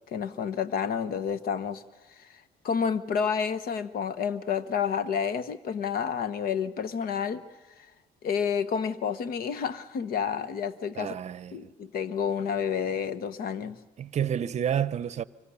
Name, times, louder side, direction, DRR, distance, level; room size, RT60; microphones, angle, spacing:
voice 1, 0.1-1.8 2.6-7.4 8.2-11.1 11.5-13.8, left 7 dB, 60° left, 1.2 m, -29 dB
voice 2, 11.0-11.7 14.0-15.2, right 9 dB, 40° right, 0.7 m, -29 dB
24.0 x 24.0 x 7.0 m
cardioid pair, 110°, 17 cm